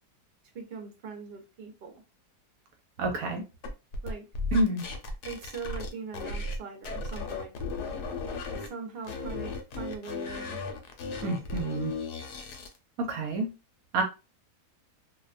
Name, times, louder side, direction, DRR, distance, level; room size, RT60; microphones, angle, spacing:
voice 1, 0.5-2.0 4.0-4.2 5.2-7.5 8.7-10.6, right 5 dB, 55° right, 0.6 m, -41 dB
voice 2, 3.0-3.4 4.5-4.8 11.2-11.9 13.0-13.5 13.9-14.0, right 2 dB, 70° right, 1.0 m, -28 dB
sound 1, 3.6-6.6 6.8-8.7 9.0-12.8, left 3 dB, 80° left, 1.1 m, -35 dB
2.6 x 2.2 x 2.4 m
omnidirectional pair, 1.7 m